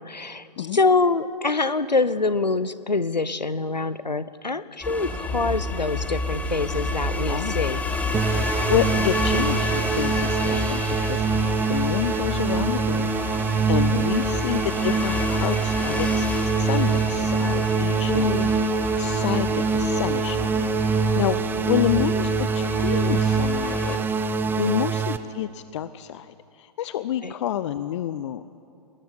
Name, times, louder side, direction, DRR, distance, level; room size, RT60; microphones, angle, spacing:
voice 1, 0.0-7.8 13.7-14.1 18.1-18.5 24.6-24.8 27.2-27.3, left 3 dB, 90° left, 15 dB, 0.8 m, -25 dB
sound 1, 4.8-24.0, left 2 dB, 5° left, 1.6 m, -30 dB
sound 2, 8.1-25.2, right 5 dB, 10° right, 0.6 m, -24 dB
voice 2, 8.4-13.1 13.4-16.3 16.6-18.6 19.0-24.1 24.3-28.4, left 11 dB, 45° left, 14 dB, 0.6 m, -29 dB
21.5 x 19.5 x 8.5 m, 2.6 s
figure-of-eight pair, 115°, 21 cm